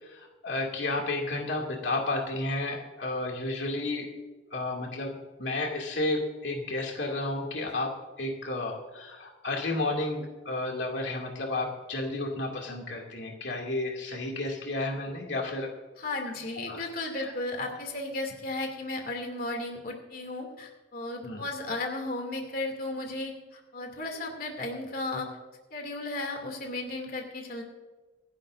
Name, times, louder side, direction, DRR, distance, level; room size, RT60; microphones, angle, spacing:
voice 1, 0.0-4.1 4.5-5.1 5.4-15.7 16.6-16.8 17.2-17.3 21.2-21.4, left 2 dB, 80° left, 0 dB, 2.4 m, -32 dB
voice 2, 16.0-25.3 25.7-27.6, left 2 dB, 50° left, 2 dB, 2.6 m, -35 dB
25.5 x 11.5 x 2.6 m, 1.2 s
head